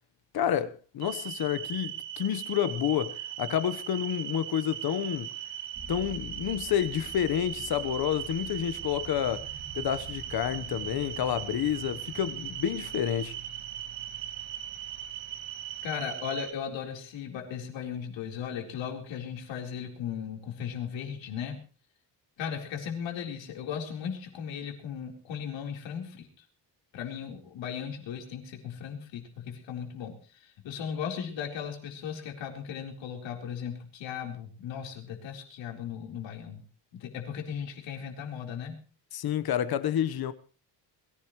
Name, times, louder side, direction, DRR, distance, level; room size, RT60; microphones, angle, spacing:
voice 1, 0.3-5.3 5.9-9.5 9.7-13.3 39.1-40.3, left 10 dB, 55° left, 1.2 m, -29 dB
sound 1, 1.0-16.5, right 11 dB, 85° right, 2.5 m, -39 dB
sound 2, 5.7-17.2, right 2 dB, 45° right, 2.4 m, -48 dB
voice 2, 15.8-21.6 22.4-26.3 26.9-36.6 36.9-38.8, left 8 dB, 85° left, 4.2 m, -37 dB
22.5 x 16.0 x 3.2 m
cardioid pair, 155°, 44 cm